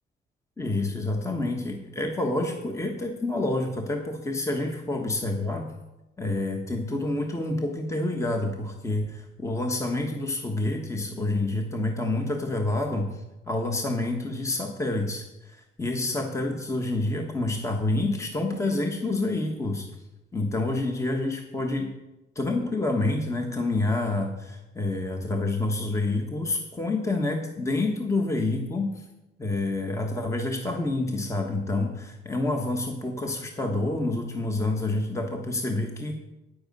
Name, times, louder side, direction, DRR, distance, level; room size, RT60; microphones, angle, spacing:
voice 1, 0.6-5.7 6.2-19.9 20.3-21.9 22.3-29.0 29.4-36.2, left 2 dB, 15° left, 3 dB, 1.3 m, -28 dB
9.4 x 8.0 x 5.3 m, 0.96 s
cardioid pair, 90°, 20 cm